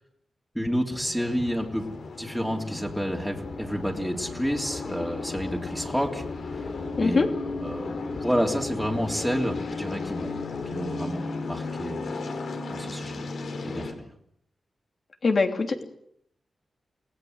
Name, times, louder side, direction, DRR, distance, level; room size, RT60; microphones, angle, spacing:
voice 1, 0.5-1.9 2.2-6.7 7.0-7.3 7.6-10.4 10.7-12.1 12.7-13.2 13.6-14.0, equal, ahead, 0 dB, 3.3 m, -29 dB
sound 1, 0.9-13.9, left 3 dB, 70° left, 4.7 m, -35 dB
voice 2, 15.2-15.8, left 4 dB, 45° left, 5 dB, 3.0 m, -23 dB
29.0 x 19.5 x 8.0 m, 0.75 s
wide cardioid pair, 135°, 0 cm